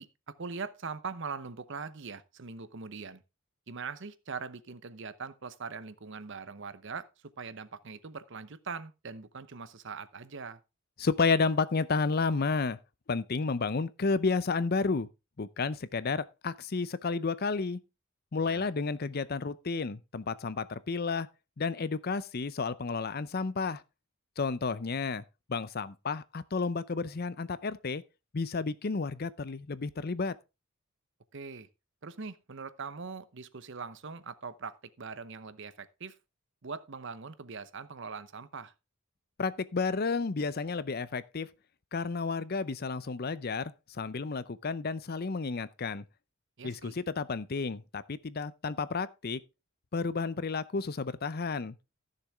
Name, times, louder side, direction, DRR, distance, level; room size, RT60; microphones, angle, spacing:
voice 1, 0.0-3.2 3.7-10.6 18.4-18.7 31.3-31.7 32.0-36.2 36.6-38.7 46.6-47.0, right 5 dB, 60° right, 0.8 m, -42 dB
voice 2, 11.0-12.8 13.1-15.1 15.4-17.8 18.3-21.3 21.6-23.8 24.4-25.2 25.5-28.0 28.3-30.3 39.4-41.5 41.9-43.7 44.0-46.0 46.6-49.4 49.9-51.7, left 4 dB, 45° left, 0.6 m, -31 dB
14.5 x 6.8 x 3.5 m
head